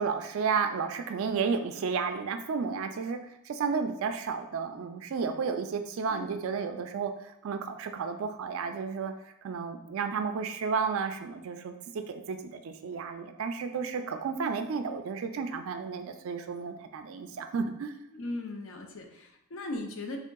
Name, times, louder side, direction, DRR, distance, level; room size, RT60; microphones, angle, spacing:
voice 1, 0.0-3.2 3.5-7.1 7.4-9.1 9.4-11.7 12.1-17.9, right 5 dB, 70° right, 7 dB, 0.3 m, -32 dB
voice 2, 18.1-20.2, left 2 dB, 60° left, 3 dB, 0.5 m, -38 dB
3.6 x 3.5 x 2.2 m, 0.84 s
head